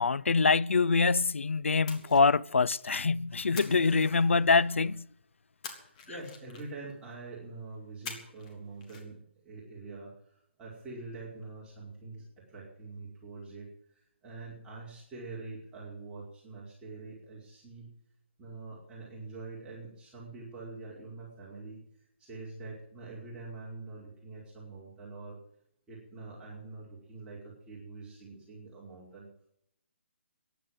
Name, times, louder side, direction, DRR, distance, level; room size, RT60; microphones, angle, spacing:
voice 1, 0.0-5.1, left 4 dB, 85° left, 0.6 m, -25 dB
Splash splatter, 1.9-3.0 3.6-4.7 5.6-6.9 8.1-8.5 8.8-9.0, left 5 dB, 35° left, 3.3 m, -45 dB
voice 2, 5.8-17.9 18.4-25.4 25.9-29.3, right 3 dB, 10° right, 5.1 m, -45 dB
15.5 x 10.5 x 7.8 m
hypercardioid pair, 150°, 7 cm